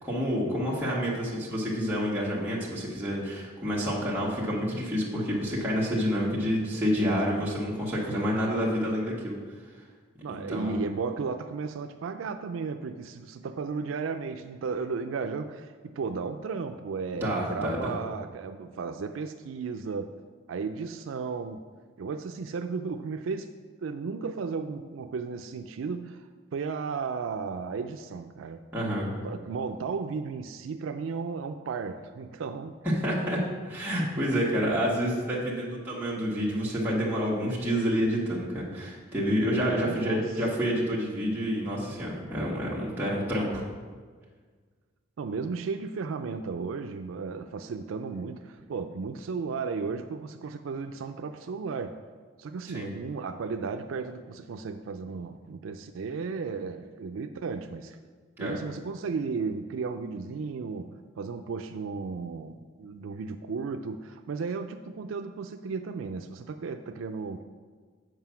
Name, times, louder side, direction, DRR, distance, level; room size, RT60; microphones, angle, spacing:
voice 1, 0.0-9.4 10.3-10.8 17.1-17.9 28.7-29.1 33.0-43.6 52.7-52.9 58.4-58.5, equal, 10° right, -7 dB, 1.5 m, -28 dB
voice 2, 10.2-20.1 20.5-21.7 22.0-23.5 23.8-28.6 29.2-32.7 39.8-40.2 45.2-52.0 52.4-58.0 58.4-67.4, right 5 dB, 80° right, 7 dB, 0.4 m, -34 dB
7.8 x 4.9 x 5.8 m, 1.5 s
head